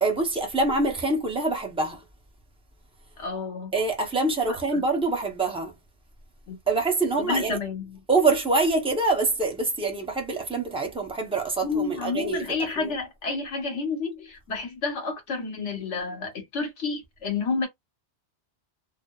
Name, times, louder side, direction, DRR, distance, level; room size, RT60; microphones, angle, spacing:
voice 1, 0.0-2.0 3.7-5.7 6.7-7.6 8.1-12.9, right 3 dB, 5° right, 0.5 m, -25 dB
voice 2, 3.2-3.7 4.5-4.8 6.5-6.6 7.2-8.0 11.6-17.7, left 4 dB, 80° left, 1.4 m, -30 dB
2.7 x 2.0 x 2.2 m
omnidirectional pair, 1.2 m